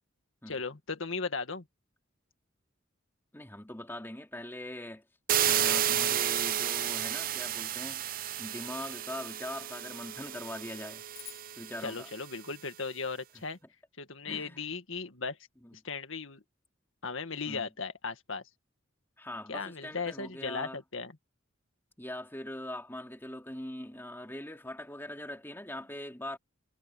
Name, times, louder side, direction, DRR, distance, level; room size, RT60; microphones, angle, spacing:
voice 1, 0.5-1.6 11.8-13.6 14.0-15.4 15.7-16.4 17.0-18.4 19.5-21.1, left 4 dB, 70° left, 2.0 m, -37 dB
voice 2, 3.3-5.0 5.4-8.0 8.4-11.0 11.6-12.1 14.2-14.6 15.6-15.8 17.5-17.7 19.2-20.8 22.0-26.4, left 1 dB, 10° left, 2.8 m, -42 dB
sound 1, 5.3-12.1, right 10 dB, 45° right, 0.6 m, -32 dB
sound 2, 11.1-13.6, left 11 dB, 30° left, 2.4 m, -54 dB
head